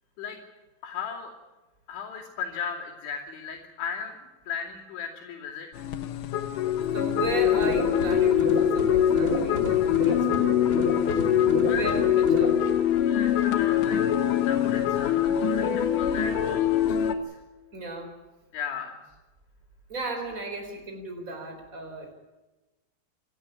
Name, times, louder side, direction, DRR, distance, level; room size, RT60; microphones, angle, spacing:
voice 1, 0.8-1.3 1.9-4.2 4.5-5.7 11.6-11.9 13.0-14.0 14.4-17.4 18.5-19.0, left 7 dB, 85° left, -6 dB, 5.2 m, -36 dB
sound 1, 5.7-17.1, left 10 dB, 70° left, 2.0 m, -24 dB
voice 2, 6.9-10.3 11.7-12.6 17.7-18.2 19.9-22.1, right 2 dB, 20° right, 4 dB, 4.2 m, -35 dB
sound 2, 7.5-12.6, left 2 dB, 20° left, 2.3 m, -30 dB
27.5 x 12.5 x 9.8 m, 1.1 s
omnidirectional pair, 5.2 m